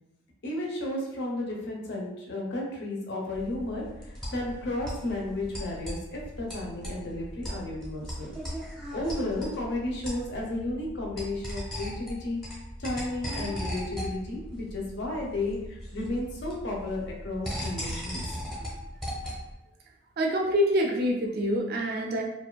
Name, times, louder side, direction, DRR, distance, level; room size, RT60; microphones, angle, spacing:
voice 1, 0.4-8.3 8.9-12.4 12.8-18.4, left 2 dB, 55° left, -2 dB, 0.5 m, -33 dB
sound 1, 3.3-19.5, equal, ahead, 0.6 m, -38 dB
voice 2, 20.2-22.3, equal, 50° right, 0 dB, 0.3 m, -26 dB
2.5 x 2.2 x 2.2 m, 0.91 s
head